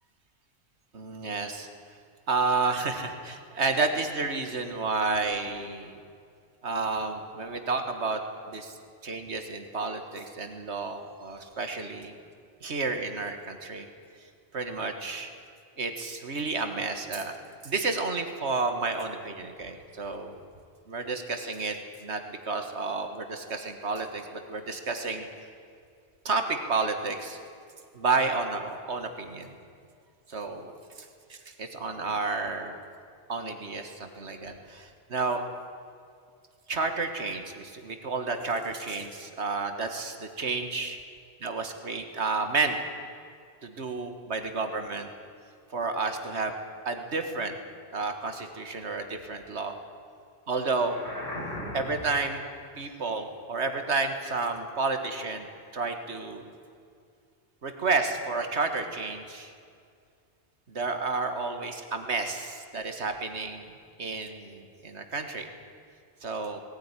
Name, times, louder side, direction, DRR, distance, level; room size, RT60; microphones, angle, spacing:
voice 1, 0.9-1.7 2.3-6.0 6.6-8.2 8.5-8.7 9.0-12.2 12.6-13.9 14.5-15.3 15.8-17.4 17.6-20.4 20.9-25.3 26.3-27.4 27.9-29.5 30.3-30.7 31.6-32.8 33.3-35.4 36.7-41.0 41.4-42.8 43.6-45.1 45.7-46.5 46.9-47.6 47.9-49.8 50.5-51.0 51.7-52.4 52.8-56.4 57.6-59.5 60.7-63.7 64.0-65.5 66.2-66.6, right 3 dB, 80° right, 6 dB, 1.9 m, -31 dB
sound 1, 50.7-52.3, left 1 dB, 55° left, 4.7 m, -38 dB
18.5 x 18.0 x 9.8 m, 2.3 s
omnidirectional pair, 1.1 m